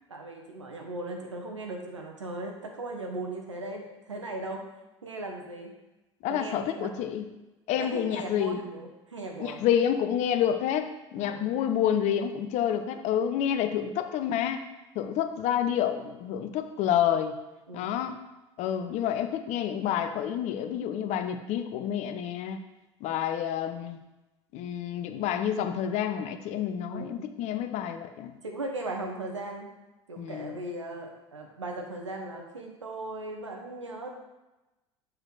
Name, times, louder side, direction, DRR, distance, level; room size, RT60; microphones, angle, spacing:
voice 1, 0.1-4.6 5.0-5.7 6.3-7.0 7.8-9.6 11.2-11.4 17.7-17.9 26.9-27.3 28.4-29.7 30.1-34.2, right 2 dB, 90° right, 2 dB, 1.1 m, -38 dB
voice 2, 6.2-7.3 7.7-8.7 9.4-14.7 14.9-17.4 17.7-18.2 18.6-22.6 23.0-24.0 24.5-28.4 30.2-30.5, left 9 dB, 50° left, 8 dB, 0.7 m, -29 dB
7.9 x 4.5 x 3.9 m, 1.0 s
figure-of-eight pair, 70°, 15 cm